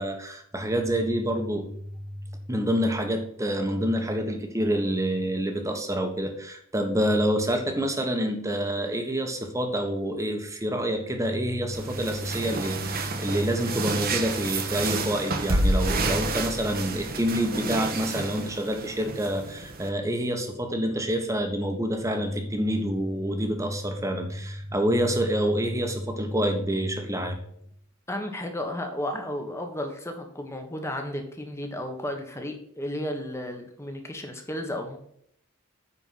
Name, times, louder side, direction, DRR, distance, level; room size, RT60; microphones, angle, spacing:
voice 1, 0.0-1.7 2.5-27.4, equal, 15° right, 4 dB, 1.3 m, -27 dB
sound 1, 11.7-19.9, right 2 dB, 45° right, 1.1 m, -30 dB
voice 2, 28.1-35.0, left 1 dB, 10° left, 4 dB, 1.3 m, -33 dB
9.7 x 4.5 x 5.6 m, 0.69 s
head